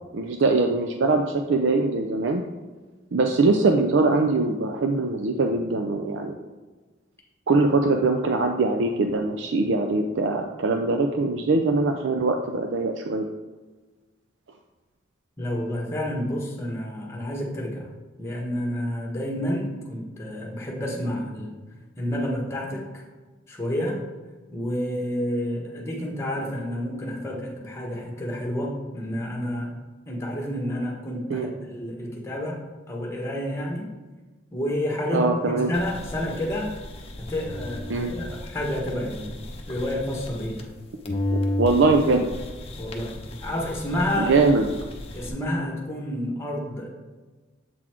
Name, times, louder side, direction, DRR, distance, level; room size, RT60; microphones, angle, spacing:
voice 1, 0.1-2.4 3.1-6.4 7.5-13.3 31.3-31.5 35.1-35.7 37.9-38.1 41.3-42.3 44.2-44.7, right 3 dB, 75° right, 4 dB, 0.5 m, -22 dB
voice 2, 15.4-17.9 18.2-21.5 22.0-23.0 23.5-24.0 24.5-29.7 30.1-32.6 32.9-33.9 34.5-36.7 37.2-40.7 42.8-44.4 45.1-46.9, left 1 dB, 15° left, -2 dB, 1.3 m, -29 dB
sound 1, 35.7-40.8 41.1-45.3, left 1 dB, 30° left, 0.8 m, -34 dB
7.5 x 4.1 x 4.5 m, 1.3 s
head